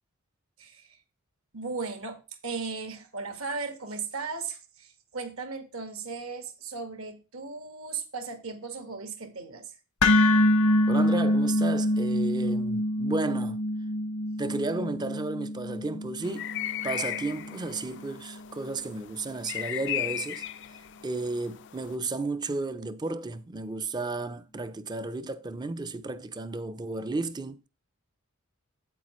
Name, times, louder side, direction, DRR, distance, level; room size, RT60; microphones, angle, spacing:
voice 1, 0.6-1.0 1.5-9.7, right 4 dB, 70° right, 1.3 m, -37 dB
sound 1, 10.0-18.1, left 1 dB, 85° left, 1.0 m, -26 dB
voice 2, 10.9-13.6 14.4-16.5 16.8-20.4 21.0-27.7, right 3 dB, 20° right, 0.4 m, -33 dB
sound 2, 16.2-21.9, left 13 dB, 55° left, 0.4 m, -37 dB
8.4 x 8.1 x 3.0 m
head